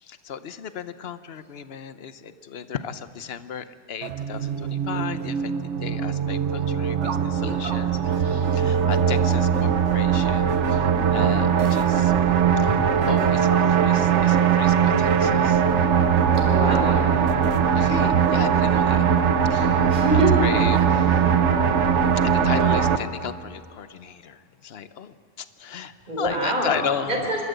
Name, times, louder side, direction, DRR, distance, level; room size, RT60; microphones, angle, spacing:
voice 1, 0.0-12.1 12.6-15.6 17.7-19.1 19.5-19.9 20.4-21.3 22.2-27.2, left 8 dB, 60° left, 12 dB, 1.0 m, -35 dB
sound 1, 4.0-23.0, right 7 dB, 70° right, 1.2 m, -20 dB
voice 2, 16.4-17.1 19.9-20.3 26.1-27.4, right 1 dB, 40° right, 0 dB, 4.3 m, -25 dB
26.5 x 13.0 x 8.2 m, 2.5 s
omnidirectional pair, 1.3 m